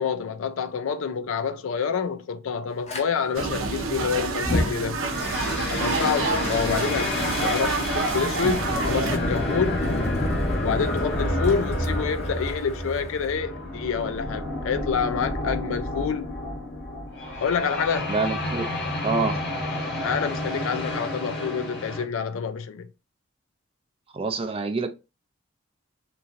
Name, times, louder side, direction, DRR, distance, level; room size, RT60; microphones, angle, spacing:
voice 1, 0.0-5.0 5.7-9.9 10.6-16.4 17.4-18.1 20.0-22.9, left 6 dB, 80° left, 0.4 m, -28 dB
Fire, 2.9-3.0 4.3-13.4, left 1 dB, 30° left, 0.6 m, -31 dB
sound 1, 3.3-9.2, right 3 dB, 80° right, 0.6 m, -28 dB
sound 2, 5.1-22.0, left 1 dB, 55° left, 0.9 m, -30 dB
voice 2, 18.1-18.7 19.0-19.4 24.1-24.9, right 4 dB, 30° right, 0.3 m, -26 dB
3.0 x 2.5 x 2.5 m
head